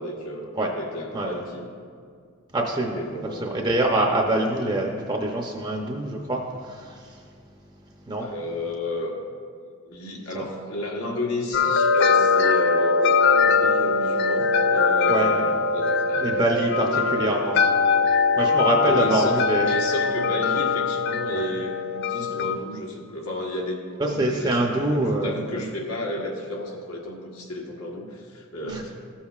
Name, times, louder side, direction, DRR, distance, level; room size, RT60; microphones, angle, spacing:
voice 1, 0.0-1.7 2.9-3.6 8.2-9.2 9.9-16.2 16.8-17.1 18.8-28.9, left 1 dB, 85° left, -1 dB, 1.3 m, -32 dB
voice 2, 2.5-3.0 3.3-7.3 8.1-8.3 10.3-10.4 15.1-15.5 16.2-17.6 18.0-19.7 21.3-21.5 24.0-25.7 28.7-28.8, right 1 dB, 20° right, 1 dB, 0.5 m, -25 dB
sound 1, 11.5-22.6, left 4 dB, 50° left, 0.3 m, -21 dB
14.0 x 7.2 x 2.4 m, 2.1 s
head